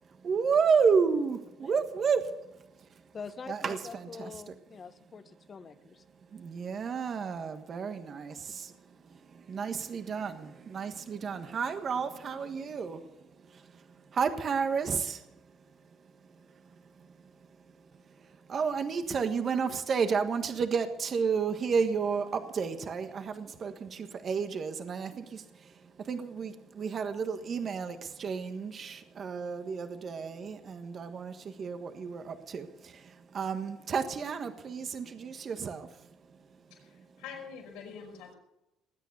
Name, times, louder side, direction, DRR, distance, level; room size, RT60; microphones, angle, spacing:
voice 1, 0.0-3.1 3.5-4.5 6.3-15.6 16.0-37.1, right 5 dB, 45° right, 8 dB, 1.4 m, -32 dB
voice 2, 3.1-6.0, left 5 dB, 40° left, 12 dB, 1.2 m, -45 dB
voice 3, 36.7-38.3, left 6 dB, 85° left, 1 dB, 5.5 m, -45 dB
20.0 x 9.3 x 7.0 m, 0.91 s
supercardioid pair, 85°, 0 cm